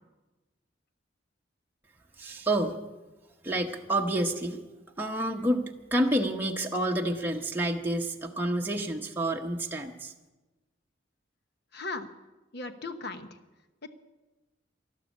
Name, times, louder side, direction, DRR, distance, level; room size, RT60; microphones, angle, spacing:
voice 1, 2.2-2.8 3.4-4.6 5.0-10.1, right 1 dB, 10° right, 0 dB, 0.9 m, -29 dB
voice 2, 11.7-12.1 12.5-13.3, left 3 dB, 60° left, 9 dB, 1.1 m, -36 dB
12.5 x 12.5 x 8.3 m, 1.1 s
head